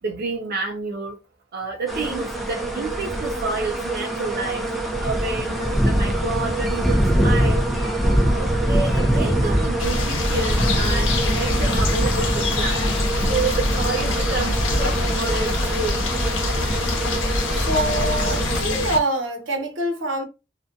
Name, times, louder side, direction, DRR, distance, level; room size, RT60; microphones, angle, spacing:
voice 1, 0.0-1.2 1.5-4.7 5.0-7.7 8.3-12.9 13.3-16.1, right 3 dB, 55° right, 0.4 m, -29 dB
sound 1, 1.9-18.6, right 1 dB, ahead, 0.5 m, -23 dB
sound 2, 9.8-19.0, left 2 dB, 85° left, 0.7 m, -24 dB
voice 2, 17.5-20.2, right 1 dB, 75° right, 0.8 m, -25 dB
2.5 x 2.3 x 2.5 m
head